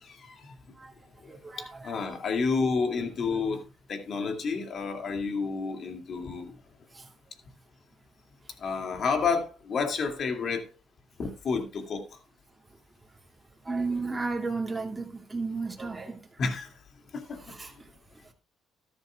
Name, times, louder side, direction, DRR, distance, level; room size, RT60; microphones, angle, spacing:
voice 1, 0.0-0.5 1.2-1.3 1.8-3.6 3.9-6.5 8.6-10.7 11.2-12.0 16.4-16.7 17.1-17.6, left 5 dB, 55° left, 4 dB, 2.5 m, -30 dB
voice 2, 1.3-2.2 6.9-7.1 13.6-16.2 17.4-17.7, right 4 dB, 20° right, 0 dB, 2.5 m, -33 dB
13.5 x 11.5 x 2.4 m, 0.32 s
supercardioid pair, 65°, 0 cm